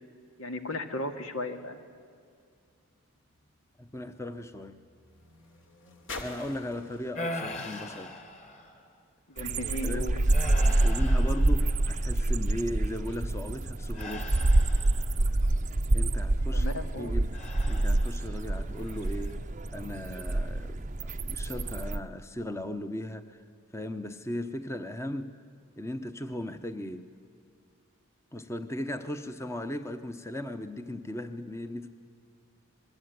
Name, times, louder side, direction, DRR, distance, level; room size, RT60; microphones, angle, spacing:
voice 1, 0.4-1.8 9.3-10.2 16.5-17.2, left 1 dB, 80° left, 2.3 m, -35 dB
sound 1, 2.6-9.1 9.9-10.0, left 3 dB, 60° left, 3.2 m, -48 dB
voice 2, 3.8-4.8 6.2-8.2 9.8-10.1 10.8-14.5 15.9-16.7 17.0-17.4 17.7-19.4 19.7-23.4 23.7-25.3 25.8-27.1 28.3-31.9, left 1 dB, 15° left, 0.9 m, -37 dB
sound 2, 7.1-8.9 9.4-9.7 10.3-12.1 13.9-15.3 17.3-18.4 18.9-19.3, left 1 dB, 30° left, 2.6 m, -40 dB
sound 3, 9.4-22.0, right 2 dB, 35° right, 0.7 m, -27 dB
28.0 x 21.5 x 9.5 m
head